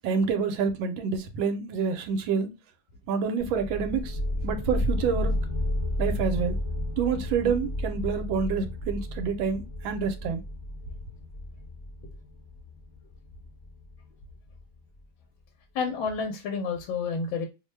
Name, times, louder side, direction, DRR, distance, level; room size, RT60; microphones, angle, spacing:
voice 1, 0.0-2.5 3.1-4.2 4.4-5.3 6.0-6.5 7.0-10.4, right 6 dB, 80° right, 1.3 m, -27 dB
sound 1, 3.4-14.8, left 1 dB, 35° left, 0.7 m, -32 dB
voice 2, 15.7-17.5, left 5 dB, 80° left, 1.3 m, -29 dB
3.2 x 2.1 x 3.0 m
omnidirectional pair, 2.2 m